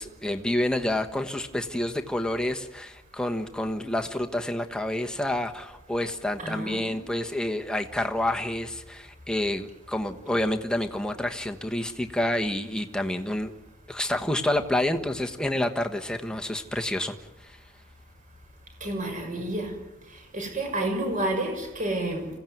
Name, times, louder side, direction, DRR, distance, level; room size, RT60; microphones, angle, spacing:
voice 1, 0.0-13.5 13.9-17.1, left 1 dB, 5° left, 4 dB, 1.3 m, -28 dB
voice 2, 6.4-7.0 18.8-19.8 20.1-22.3, right 1 dB, 40° right, 3 dB, 6.2 m, -30 dB
26.0 x 16.5 x 9.4 m, 1.0 s
head